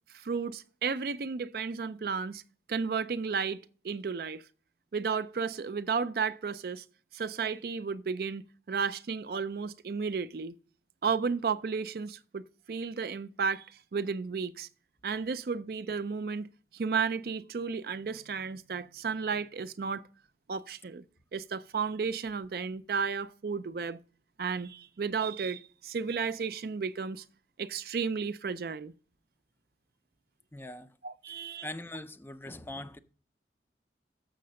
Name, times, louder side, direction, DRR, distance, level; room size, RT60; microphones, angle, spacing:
voice 1, 0.1-2.4 2.7-4.4 4.9-6.8 7.1-10.5 11.0-14.7 15.0-16.5 16.7-20.0 20.5-21.0 21.3-24.0 24.4-27.2 27.6-28.9 31.0-31.7, right 5 dB, 55° right, 0.4 m, -33 dB
voice 2, 30.5-30.9 31.6-33.0, left 1 dB, 10° left, 0.4 m, -41 dB
6.7 x 6.5 x 6.2 m
head